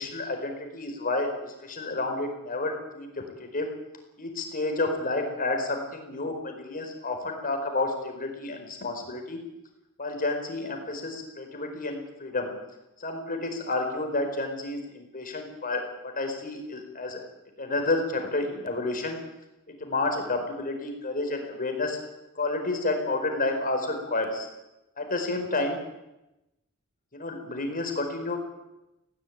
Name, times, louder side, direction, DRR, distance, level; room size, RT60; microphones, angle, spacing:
voice 1, 0.0-3.7 4.2-9.4 10.0-12.5 13.0-17.2 17.6-19.2 19.8-22.0 22.3-24.5 25.0-25.8 27.1-28.4, left 2 dB, 40° left, 4 dB, 4.7 m, -30 dB
19.5 x 17.5 x 9.4 m, 0.96 s
head